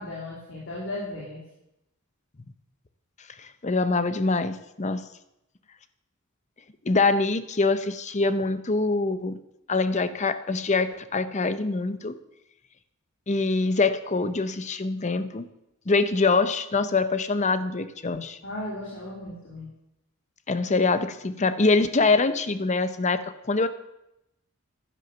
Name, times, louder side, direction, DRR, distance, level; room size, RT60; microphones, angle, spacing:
voice 1, 0.0-1.4 18.4-19.7, left 1 dB, 60° left, -4 dB, 2.8 m, -35 dB
voice 2, 3.4-5.0 6.8-9.4 9.7-12.2 13.3-15.5 15.9-18.4 20.5-23.7, left 3 dB, 35° left, 12 dB, 0.7 m, -24 dB
11.0 x 10.0 x 6.9 m, 0.86 s
head